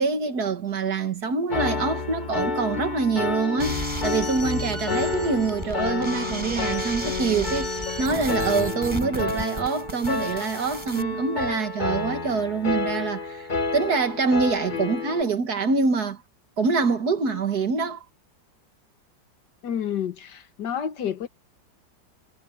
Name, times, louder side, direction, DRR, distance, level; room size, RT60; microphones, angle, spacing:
voice 1, 0.0-16.2 16.6-18.1, right 4 dB, 60° right, 2.2 m, -25 dB
Piano, 1.5-15.2, left 3 dB, 30° left, 1.2 m, -29 dB
sound 1, 3.6-11.0, equal, 15° right, 8.2 m, -34 dB
voice 2, 19.6-21.3, left 8 dB, 70° left, 1.8 m, -29 dB
omnidirectional pair, 1.9 m